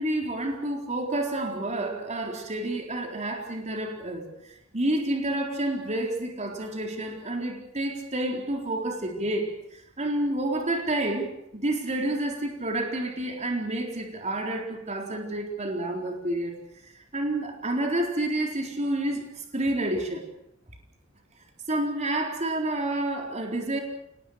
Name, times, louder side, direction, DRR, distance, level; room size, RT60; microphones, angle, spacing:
voice 1, 0.0-9.5 10.0-16.5 16.8-20.3 21.7-23.8, right 1 dB, 35° right, 2 dB, 4.1 m, -29 dB
27.0 x 19.5 x 6.7 m, 0.79 s
head